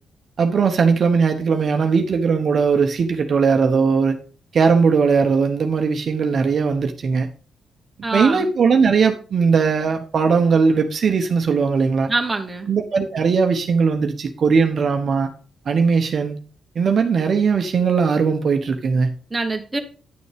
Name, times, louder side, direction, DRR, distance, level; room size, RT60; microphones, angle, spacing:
voice 1, 0.4-4.1 4.5-7.3 8.1-12.1 12.7-15.3 15.7-16.4 16.8-19.1, right 5 dB, 45° right, 0.8 m, -19 dB
voice 2, 8.0-8.4 12.1-12.7 19.3-19.8, right 3 dB, 15° right, 1.1 m, -24 dB
9.5 x 6.9 x 3.4 m
cardioid pair, 140°, 0 cm